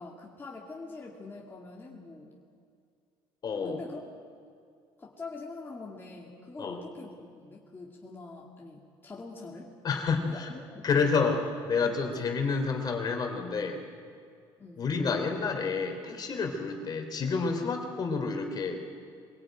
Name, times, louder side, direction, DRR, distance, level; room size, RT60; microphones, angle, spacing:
voice 1, 0.0-2.3 3.5-4.1 5.0-9.7 10.3-10.9 11.8-12.2 14.6-14.8, left 3 dB, 20° left, -3 dB, 2.4 m, -44 dB
voice 2, 3.4-3.8 6.6-6.8 9.8-10.5 10.8-13.8 14.8-18.8, left 4 dB, 45° left, 4 dB, 3.4 m, -29 dB
23.5 x 17.0 x 9.1 m, 2.3 s
cardioid pair, 100°, 10 cm